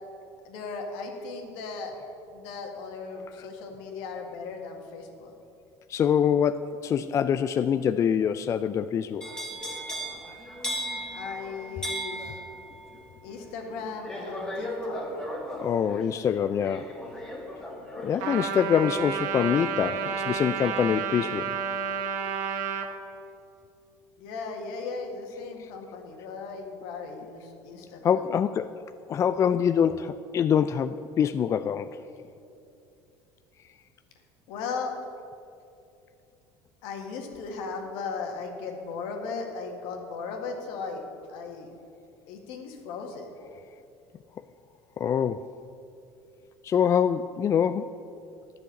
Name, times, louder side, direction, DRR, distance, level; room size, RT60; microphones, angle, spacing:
voice 1, 0.5-1.9 2.3-5.3 11.1-12.4 13.2-15.1 24.2-28.2 34.5-34.9 36.8-41.0 41.3-41.7 42.3-43.3, left 4 dB, 75° left, 3 dB, 1.8 m, -37 dB
voice 2, 5.9-9.3 15.6-16.9 18.0-21.5 28.0-28.7 29.1-31.9 45.0-45.4 46.6-47.9, left 8 dB, 35° left, 11 dB, 0.3 m, -25 dB
sound 1, 9.2-21.2 21.5-21.9, equal, 10° left, 2.1 m, -37 dB
Trumpet, 18.2-22.9, right 7 dB, 80° right, 1.1 m, -30 dB
10.5 x 6.5 x 8.4 m, 2.7 s
supercardioid pair, 100°, 9 cm